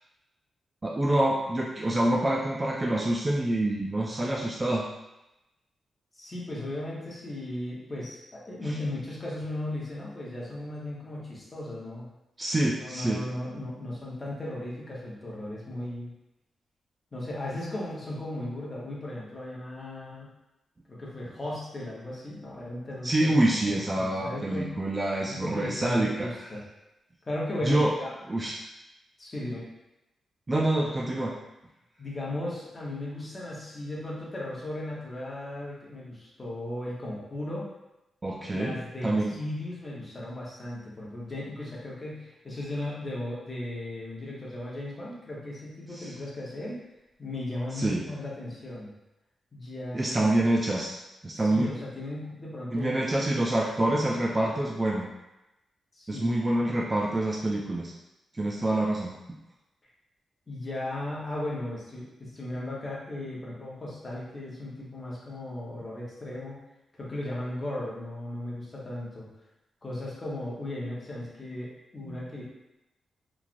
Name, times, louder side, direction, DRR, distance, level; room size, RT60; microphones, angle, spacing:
voice 1, 0.8-4.8 12.4-13.2 23.0-26.5 27.6-27.9 28.3-28.6 30.5-31.4 38.2-38.8 39.0-39.4 45.9-46.1 47.8-48.0 49.9-50.9 51.2-51.7 52.7-55.1 56.1-57.9 58.4-59.1 72.1-72.2, right 1 dB, 20° right, -3 dB, 0.3 m, -26 dB
voice 2, 6.1-12.1 12.8-16.1 17.1-20.3 20.9-24.7 25.3-26.6 27.3-28.1 29.2-29.6 32.0-37.7 38.5-46.8 47.2-48.9 49.5-50.2 51.3-53.1 55.9-56.4 60.5-66.6 66.9-69.3 69.8-72.4, left 1 dB, 25° left, -6 dB, 0.8 m, -36 dB
3.1 x 2.4 x 2.5 m, 0.93 s
wide cardioid pair, 135°, 0 cm